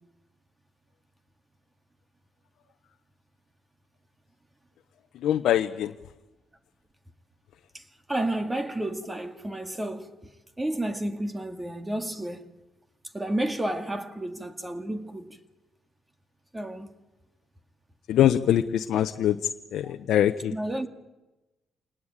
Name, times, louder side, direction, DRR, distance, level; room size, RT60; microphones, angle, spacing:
voice 1, 5.2-5.9 18.1-20.5, left 11 dB, 75° left, 0.8 m, -23 dB
voice 2, 7.7-10.2 10.6-12.5 13.1-15.4 16.5-16.9 19.8-19.9 20.5-20.9, right 1 dB, 15° right, 2.1 m, -31 dB
27.5 x 19.5 x 9.0 m
cardioid pair, 110°, 0 cm